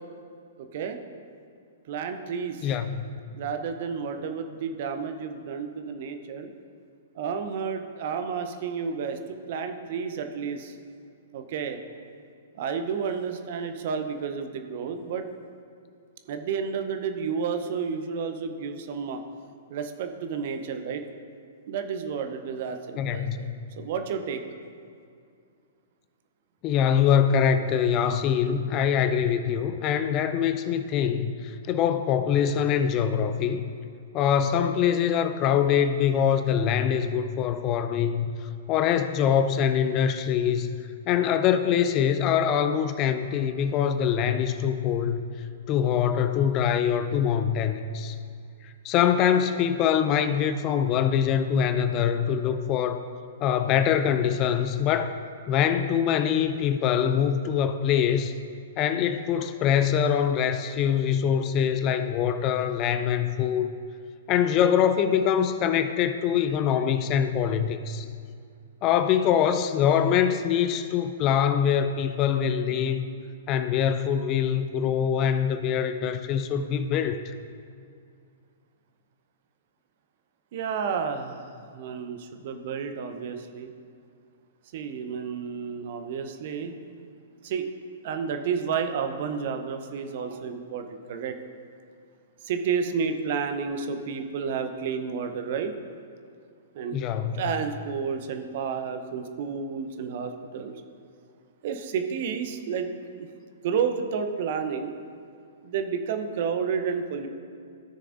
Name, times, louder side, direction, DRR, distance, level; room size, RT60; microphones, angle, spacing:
voice 1, 0.6-1.0 1.9-2.7 3.3-6.5 7.2-10.7 11.3-11.8 12.5-15.3 16.3-19.2 19.7-21.0 21.7-23.5 23.8-24.4 80.5-83.7 84.7-86.7 87.4-87.6 88.0-91.4 92.4-95.7 96.8-97.0 97.3-100.8 101.6-103.3 103.6-104.9 105.6-107.3, right 6 dB, 50° right, 6 dB, 0.7 m, -31 dB
voice 2, 2.6-3.1 23.0-23.5 26.6-31.3 31.7-33.6 34.1-38.3 38.7-40.7 41.1-45.2 45.7-48.2 48.8-53.0 53.4-55.1 55.5-58.3 58.8-63.7 64.3-68.0 68.8-73.1 73.5-77.2 96.9-97.4, left 8 dB, 30° left, 10 dB, 0.4 m, -24 dB
15.0 x 6.6 x 2.6 m, 2.3 s
figure-of-eight pair, 110°, 0 cm